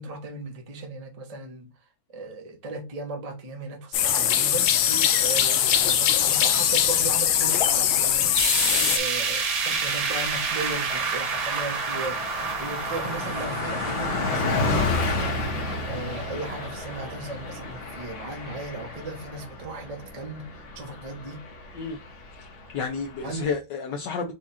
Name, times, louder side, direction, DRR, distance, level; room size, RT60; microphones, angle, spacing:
voice 1, 0.0-1.7 2.1-4.8 5.2-8.4 8.9-15.5 15.9-20.5 20.7-21.4 23.2-23.5, right 3 dB, 30° right, 0.7 m, -36 dB
sound 1, 3.9-9.0, left 10 dB, 85° left, 1.4 m, -21 dB
Car passing by, 7.9-8.5 8.9-9.0 9.3-23.6, left 3 dB, 50° left, 1.0 m, -32 dB
sound 2, 8.4-18.5 18.9-19.0 19.4-19.5 20.4-20.5, right 5 dB, 80° right, 2.2 m, -30 dB
voice 2, 22.4-24.3, left 5 dB, 70° left, 1.3 m, -31 dB
4.8 x 2.4 x 4.1 m
omnidirectional pair, 2.1 m